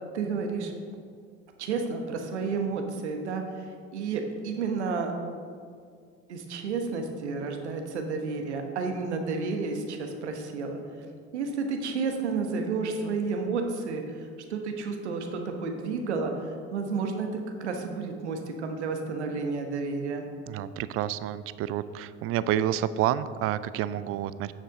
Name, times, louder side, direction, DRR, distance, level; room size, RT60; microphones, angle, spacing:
voice 1, 0.1-0.7 1.6-5.1 6.3-10.8 11.3-20.3, right 4 dB, 85° right, 4 dB, 1.1 m, -31 dB
voice 2, 20.5-24.5, right 11 dB, 45° right, 15 dB, 0.4 m, -29 dB
9.1 x 6.8 x 3.7 m, 2.1 s
hypercardioid pair, 75°, 33 cm